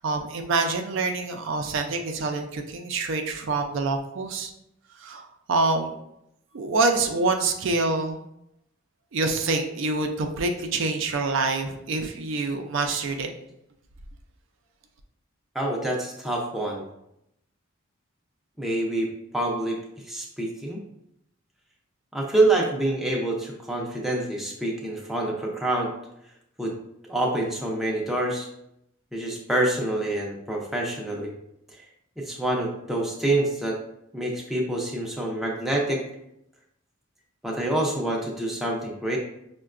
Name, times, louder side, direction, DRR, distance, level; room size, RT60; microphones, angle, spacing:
voice 1, 0.0-4.5 5.0-6.0 6.5-8.2 9.1-13.3, right 3 dB, 60° right, 4 dB, 0.4 m, -26 dB
voice 2, 15.5-16.8 18.6-19.8 20.1-20.8 22.1-25.9 26.6-26.7 27.0-28.5 29.1-31.3 31.7-31.8 32.2-33.8 34.1-36.0 37.4-39.2, right 1 dB, ahead, -2 dB, 0.4 m, -26 dB
5.5 x 2.2 x 2.4 m, 0.80 s
head